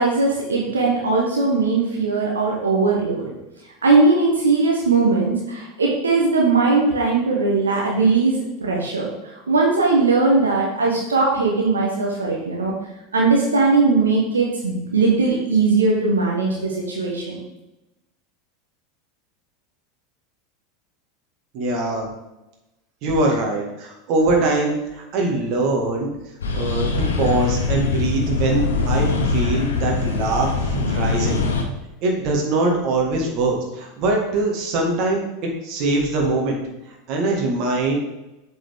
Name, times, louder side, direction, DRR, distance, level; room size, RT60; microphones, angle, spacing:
voice 1, 0.0-3.2 3.8-12.7 13.1-17.4, right 3 dB, 85° right, -2 dB, 1.1 m, -19 dB
voice 2, 21.5-22.1 23.0-26.1 26.5-31.4 32.0-36.6 37.1-38.0, right 2 dB, 50° right, 0 dB, 1.7 m, -22 dB
sound 1, 26.4-31.6, left 3 dB, 80° left, 0.9 m, -22 dB
7.7 x 4.5 x 3.6 m, 0.98 s
hypercardioid pair, 85°, 0 cm